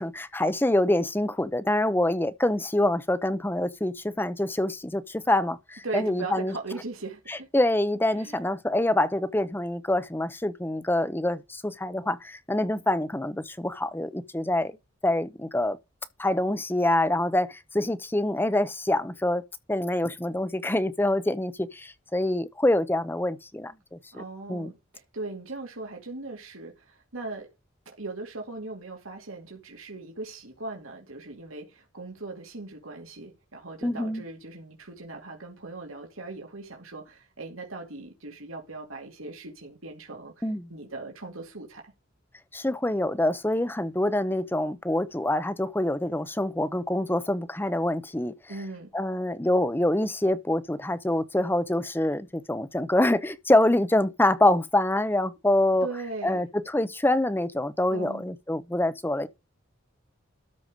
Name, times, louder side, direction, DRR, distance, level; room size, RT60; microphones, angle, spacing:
voice 1, 0.0-6.5 7.3-14.7 15.0-15.8 16.2-19.4 19.7-24.2 24.5-24.7 33.8-34.2 40.4-40.6 42.5-48.3 48.9-55.9 56.2-59.3, left 1 dB, 10° left, 0.7 m, -25 dB
voice 2, 5.8-7.5 8.2-8.4 24.1-27.5 27.9-41.9 48.5-48.9 55.8-56.4 57.9-58.2, right 3 dB, 80° right, 2.6 m, -39 dB
13.0 x 4.8 x 5.2 m
head